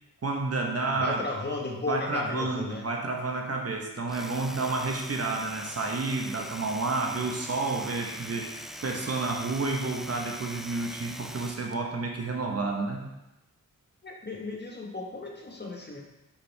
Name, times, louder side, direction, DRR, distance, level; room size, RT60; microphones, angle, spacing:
voice 1, 0.2-1.2 1.9-13.1, right 3 dB, 45° right, 1 dB, 1.2 m, -30 dB
voice 2, 0.9-2.9 14.0-16.0, left 2 dB, 30° left, -1 dB, 1.4 m, -34 dB
Domestic sounds home sounds, 4.0-11.8, equal, ahead, 0.3 m, -42 dB
6.5 x 5.8 x 3.5 m, 0.95 s
cardioid pair, 75°, 33 cm